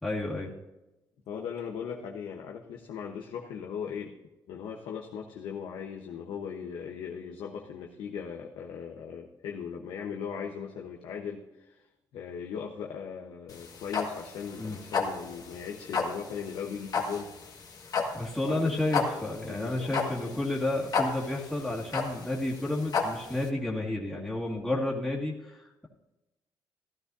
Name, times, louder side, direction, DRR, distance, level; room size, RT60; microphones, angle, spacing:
voice 1, 0.0-0.5 14.6-14.8 18.1-25.9, left 2 dB, 5° left, -5 dB, 2.0 m, -31 dB
voice 2, 1.3-4.2 4.5-11.8 12.1-17.3 18.4-18.8 19.5-20.4, left 7 dB, 80° left, 0 dB, 1.1 m, -38 dB
sound 1, 13.5-23.5, left 5 dB, 50° left, 1.8 m, -32 dB
15.0 x 12.5 x 2.7 m, 1.0 s
cardioid pair, 90°, 8 cm